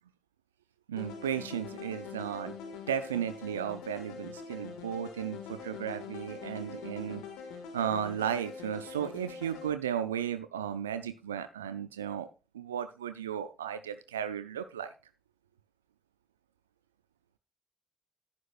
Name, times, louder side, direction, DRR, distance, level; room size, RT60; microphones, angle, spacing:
voice 1, 0.9-2.6 2.9-7.2 7.7-12.3 12.5-14.9, right 9 dB, 85° right, 12 dB, 0.4 m, -35 dB
sound 1, 1.0-9.7, left 5 dB, 75° left, 1.7 m, -44 dB
11.0 x 9.6 x 2.4 m, 0.29 s
figure-of-eight pair, 40°, 0 cm